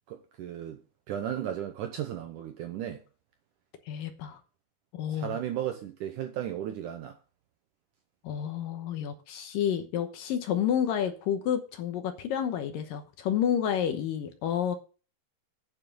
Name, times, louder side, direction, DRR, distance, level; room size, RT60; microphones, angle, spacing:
voice 1, 0.1-0.8 1.1-3.0 5.1-7.2, right 10 dB, 75° right, 1.9 m, -35 dB
voice 2, 3.9-4.4 4.9-5.4 8.2-14.8, left 9 dB, 70° left, 2.5 m, -30 dB
9.4 x 6.6 x 6.8 m
omnidirectional pair, 4.6 m